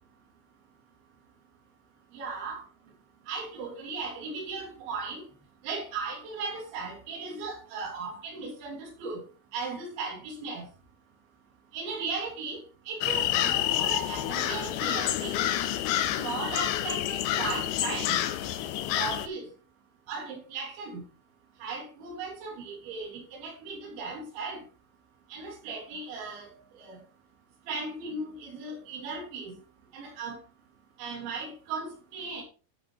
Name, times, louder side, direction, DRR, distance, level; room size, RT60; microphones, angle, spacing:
voice 1, 2.1-2.6 3.3-5.2 5.6-9.2 9.5-10.7 11.7-12.6 12.9-15.4 16.2-18.2 19.0-19.4 20.1-21.0 21.6-24.6 25.3-27.0 27.7-29.6 29.9-30.4 31.0-32.4, right 4 dB, 65° right, -1 dB, 5.4 m, -37 dB
sound 1, 13.0-19.3, left 12 dB, 80° left, 2.7 m, -28 dB
12.5 x 6.1 x 4.0 m, 0.35 s
omnidirectional pair, 5.8 m